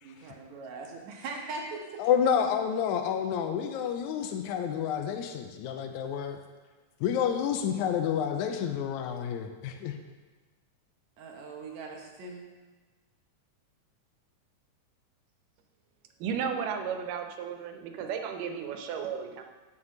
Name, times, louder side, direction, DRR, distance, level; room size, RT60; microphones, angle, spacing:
voice 1, 0.0-2.0 11.2-12.5, right 3 dB, 65° right, 1 dB, 2.2 m, -40 dB
voice 2, 2.0-6.4 7.0-10.0, left 8 dB, 80° left, 5 dB, 1.9 m, -29 dB
voice 3, 16.2-19.4, right 7 dB, 85° right, 5 dB, 2.4 m, -34 dB
7.8 x 5.9 x 6.5 m, 1.3 s
omnidirectional pair, 3.7 m